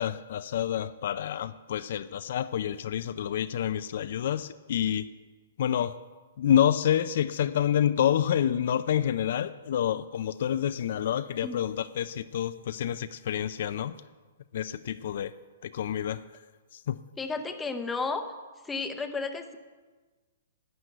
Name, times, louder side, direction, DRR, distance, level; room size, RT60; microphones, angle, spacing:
voice 1, 0.0-5.1 5.6-6.0 6.4-13.9 14.5-15.3 15.6-16.2 16.7-17.0, left 10 dB, 50° left, 13 dB, 0.4 m, -28 dB
voice 2, 17.2-18.2 18.6-19.6, left 4 dB, 5° left, 7 dB, 0.6 m, -32 dB
12.0 x 9.4 x 7.8 m, 1.4 s
hypercardioid pair, 175°, 0 cm